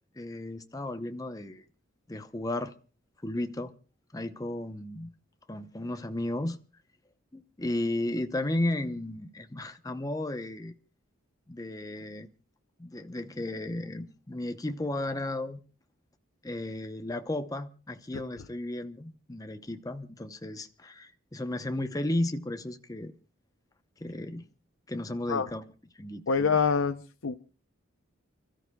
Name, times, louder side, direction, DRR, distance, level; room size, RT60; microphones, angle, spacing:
voice 1, 0.2-1.6 2.1-2.7 3.2-3.7 4.1-5.1 5.5-6.6 7.3-10.7 11.5-12.3 12.8-15.6 16.4-23.1 24.0-24.4 24.9-25.6 26.0-26.2, left 1 dB, 15° left, 0.7 m, -34 dB
voice 2, 26.3-27.3, left 5 dB, 70° left, 0.6 m, -26 dB
30.0 x 13.5 x 2.3 m
head